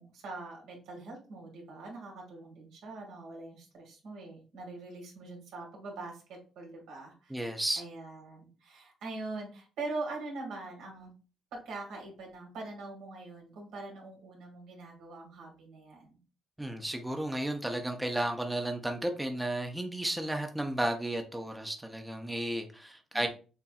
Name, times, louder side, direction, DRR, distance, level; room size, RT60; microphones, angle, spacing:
voice 1, 0.0-7.4 7.8-11.1 11.5-16.2 23.1-23.3, right 3 dB, 85° right, -1 dB, 2.0 m, -43 dB
voice 2, 7.3-7.8 16.6-23.3, right 1 dB, 5° right, 4 dB, 0.7 m, -33 dB
6.9 x 2.5 x 2.4 m, 0.35 s
cardioid pair, 90°, 0 cm